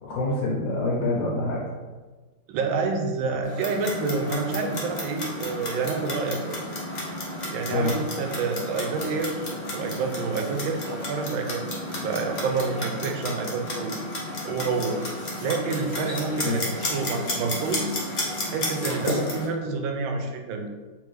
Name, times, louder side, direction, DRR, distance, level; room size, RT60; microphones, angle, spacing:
voice 1, 0.0-1.6 7.7-7.9 16.4-16.6, left 2 dB, 75° left, -5 dB, 1.6 m, -26 dB
voice 2, 2.5-6.6 7.5-9.4 9.7-11.7 12.0-13.9 14.4-15.0 15.4-18.0 18.5-20.7, right 4 dB, 90° right, 4 dB, 1.4 m, -28 dB
Clock, 3.4-19.5, left 1 dB, 60° left, 0.4 m, -32 dB
3.5 x 3.3 x 3.3 m, 1.3 s
omnidirectional pair, 2.1 m